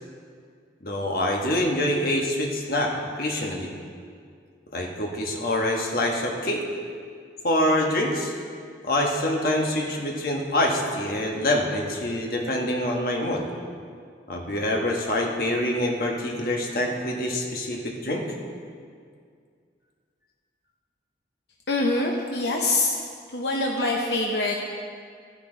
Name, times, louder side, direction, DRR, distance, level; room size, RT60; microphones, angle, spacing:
voice 1, 0.8-3.7 4.7-6.6 7.4-8.3 8.8-13.4 14.3-18.2, left 1 dB, 55° left, 0 dB, 1.3 m, -25 dB
voice 2, 21.7-22.9 23.3-24.5, left 2 dB, 70° left, 0 dB, 0.8 m, -24 dB
12.5 x 10.0 x 3.9 m, 2.2 s
head